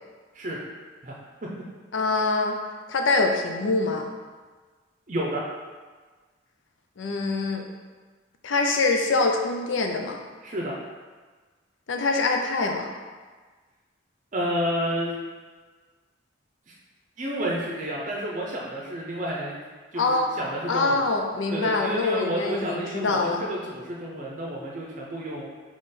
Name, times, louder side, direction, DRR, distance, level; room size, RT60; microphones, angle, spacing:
voice 1, 1.9-2.6 2.9-4.1 7.0-7.7 8.4-10.2 11.9-12.9 20.0-20.3 20.7-23.4, left 3 dB, 80° left, 3 dB, 0.5 m, -24 dB
voice 2, 5.1-5.4 10.4-10.8 14.3-15.2 16.7-16.8 17.2-19.6 19.9-21.0 21.5-25.5, equal, 40° right, -3 dB, 0.6 m, -30 dB
3.7 x 3.0 x 4.1 m, 1.4 s
head